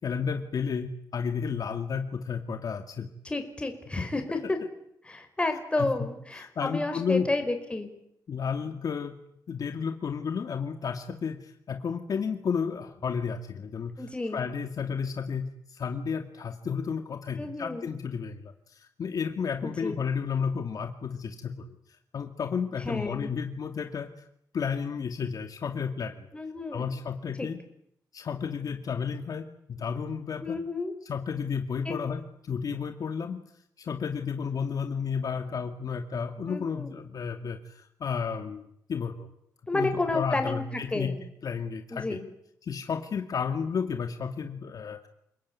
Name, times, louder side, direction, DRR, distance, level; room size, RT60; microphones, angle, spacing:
voice 1, 0.0-3.1 4.0-4.1 5.8-5.9 6.3-7.3 8.3-9.2 9.5-14.1 14.3-21.8 22.1-24.1 24.5-26.3 26.7-27.6 28.1-30.6 31.1-33.4 33.8-39.3 39.7-42.2 42.6-45.1, left 6 dB, 60° left, 7 dB, 2.2 m, -32 dB
voice 2, 3.3-4.6 5.1-7.9 14.0-14.4 17.4-17.9 19.6-19.9 22.8-23.3 26.3-26.8 27.4-27.5 30.4-30.9 31.9-32.0 36.5-36.9 39.7-41.1 41.9-42.2, left 2 dB, 15° left, 6 dB, 5.2 m, -31 dB
29.0 x 20.5 x 9.6 m, 0.74 s
wide cardioid pair, 115°, 7 cm